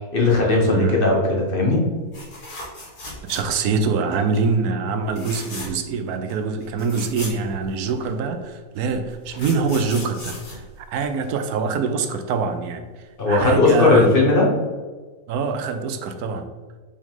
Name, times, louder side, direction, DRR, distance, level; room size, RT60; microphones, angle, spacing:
voice 1, 0.1-1.8 13.2-14.5, left 3 dB, 40° left, -2 dB, 1.1 m, -17 dB
voice 2, 0.6-0.9 3.3-12.8 13.3-14.1 15.3-16.5, right 5 dB, 80° right, 8 dB, 1.1 m, -24 dB
sound 1, 2.1-3.8 4.1-4.4 5.1-5.9 6.3-6.4 6.6-8.1 8.9-11.4 13.3-13.5 13.8-13.9, left 1 dB, 65° left, 2.5 m, -37 dB
5.3 x 4.8 x 3.7 m, 1.4 s
omnidirectional pair, 1.6 m